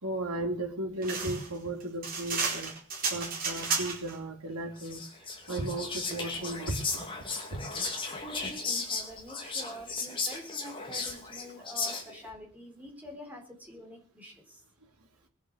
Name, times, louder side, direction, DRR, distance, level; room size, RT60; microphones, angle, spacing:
voice 1, 0.0-2.7 3.1-5.0 5.5-7.1 7.5-7.6, right 1 dB, 85° right, 2 dB, 3.3 m, -35 dB
sound 1, 1.0-4.2, right 4 dB, 40° right, 4.4 m, -32 dB
Whispering, 4.8-12.3, left 4 dB, 20° left, 2.7 m, -35 dB
voice 2, 8.2-14.6, equal, 5° right, 0 dB, 4.0 m, -46 dB
21.0 x 8.3 x 6.5 m, 0.41 s
head